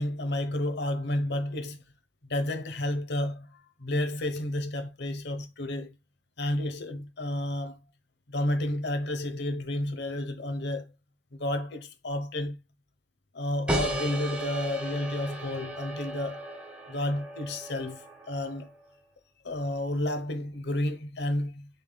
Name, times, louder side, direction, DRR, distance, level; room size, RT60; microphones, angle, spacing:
voice 1, 0.0-1.8 2.3-3.5 3.8-6.0 6.4-7.8 8.3-10.9 11.4-12.6 13.3-16.4 16.9-18.7 19.4-21.7, left 1 dB, 60° left, 0.9 m, -31 dB
sound 1, 13.7-18.9, right 1 dB, 5° right, 0.9 m, -35 dB
6.5 x 3.5 x 2.3 m
head